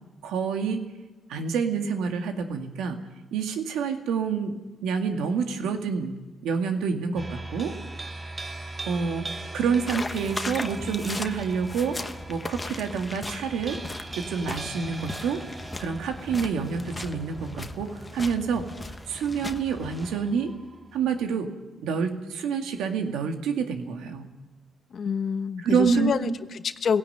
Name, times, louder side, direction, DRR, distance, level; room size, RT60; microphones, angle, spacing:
voice 1, 0.2-0.8 1.3-3.0 3.3-6.1 6.4-7.8 8.9-9.3 9.5-12.0 12.3-13.8 14.1-15.4 15.8-18.7 19.1-20.5 20.9-21.5 21.8-24.3 25.6-26.4, right 6 dB, 85° right, 5 dB, 2.2 m, -27 dB
sound 1, 7.2-21.3, right 2 dB, 25° right, 2.2 m, -40 dB
sound 2, 9.9-20.1, left 2 dB, 20° left, 1.2 m, -38 dB
voice 2, 24.9-27.0, left 6 dB, 50° left, 10 dB, 1.1 m, -27 dB
17.0 x 17.0 x 9.4 m, 1.2 s
cardioid pair, 90°, 0 cm